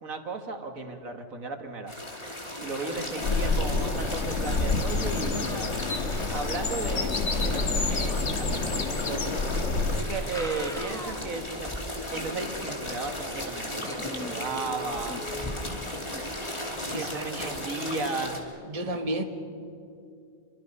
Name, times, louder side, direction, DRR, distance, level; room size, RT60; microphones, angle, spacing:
voice 1, 0.0-1.9 2.6-5.5 6.3-9.3 10.0-11.7 12.1-15.2 16.9-18.5, right 3 dB, 80° right, 5 dB, 2.1 m, -35 dB
sound 1, 1.9-18.4, left 1 dB, 20° left, 2.7 m, -36 dB
sound 2, 3.2-10.0, left 3 dB, 60° left, 1.7 m, -28 dB
sound 3, 4.7-7.5 8.9-9.0 10.1-11.5 12.0-12.1 13.8-16.6, equal, 5° left, 1.2 m, -43 dB
voice 2, 16.9-17.5 18.7-19.2, right 1 dB, 25° right, 5 dB, 1.5 m, -32 dB
27.5 x 23.5 x 5.5 m, 2.5 s
omnidirectional pair, 1.4 m